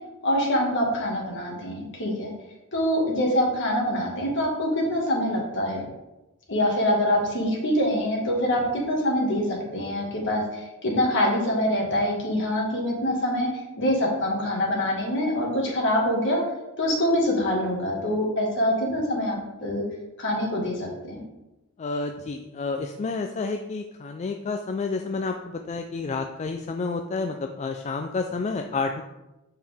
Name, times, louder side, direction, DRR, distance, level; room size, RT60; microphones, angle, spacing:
voice 1, 0.2-2.3 2.7-5.8 6.5-16.4 16.8-19.8 20.2-21.2, left 1 dB, 60° left, -1 dB, 1.8 m, -25 dB
voice 2, 21.8-29.0, left 4 dB, 30° left, 5 dB, 0.3 m, -30 dB
7.4 x 4.4 x 3.5 m, 1.0 s
head